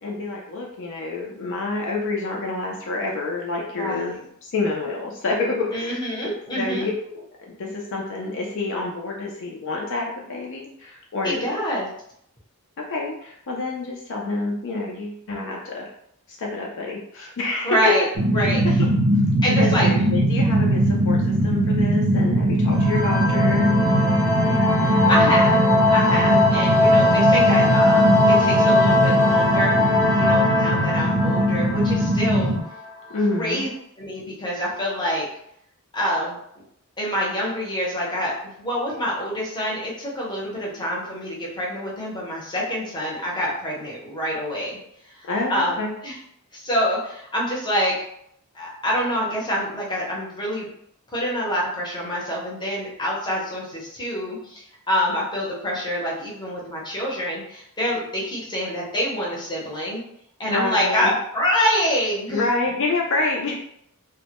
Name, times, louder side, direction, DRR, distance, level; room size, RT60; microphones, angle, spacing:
voice 1, 0.0-6.0 6.5-7.2 7.6-11.5 12.8-15.9 16.3-17.9 18.3-18.9 19.5-23.7 33.1-33.6 45.3-45.9 60.5-61.1 62.3-63.6, left 3 dB, 60° left, -1 dB, 0.4 m, -27 dB
voice 2, 3.7-4.2 5.7-6.9 11.2-11.9 17.6-18.0 18.3-18.6 19.4-19.9 23.8-24.1 24.4-25.6 25.9-29.8 30.1-32.6 33.3-33.7 34.0-35.3 35.9-36.4 37.0-44.8 45.2-46.2 46.5-48.0 48.5-50.7 51.1-60.0 60.4-62.5, equal, 20° left, -4 dB, 0.7 m, -26 dB
sound 1, 18.2-32.6, right 1 dB, 65° right, 0.5 m, -21 dB
sound 2, 22.7-33.1, left 2 dB, 15° right, 0.6 m, -20 dB
2.1 x 2.1 x 2.8 m, 0.71 s
head